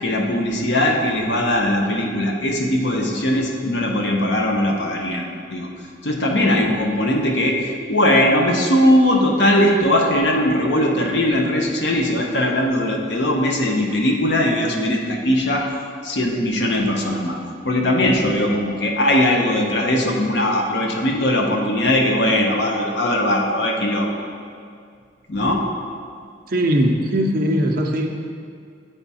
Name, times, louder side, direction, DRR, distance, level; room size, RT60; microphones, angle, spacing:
voice 1, 0.0-5.2 5.5-5.7 6.0-15.7 16.0-17.4 17.6-24.1 25.3-25.6, left 1 dB, 65° left, 1 dB, 0.7 m, -19 dB
voice 2, 26.5-28.1, equal, 50° right, 2 dB, 0.6 m, -20 dB
8.5 x 3.5 x 4.1 m, 2.3 s
head